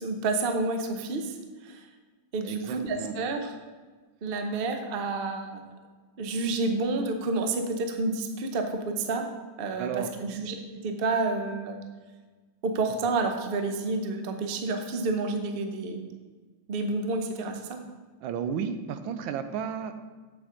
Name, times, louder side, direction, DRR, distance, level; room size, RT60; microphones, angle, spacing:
voice 1, 0.0-1.4 1.6-1.8 2.3-3.5 4.2-5.6 6.2-9.3 9.6-11.8 12.6-16.1 16.7-17.8, right 3 dB, 60° right, 5 dB, 0.5 m, -29 dB
voice 2, 2.4-3.1 9.8-10.1 18.2-19.9, right 7 dB, 90° right, 10 dB, 1.4 m, -33 dB
7.8 x 7.1 x 3.8 m, 1.3 s
omnidirectional pair, 2.1 m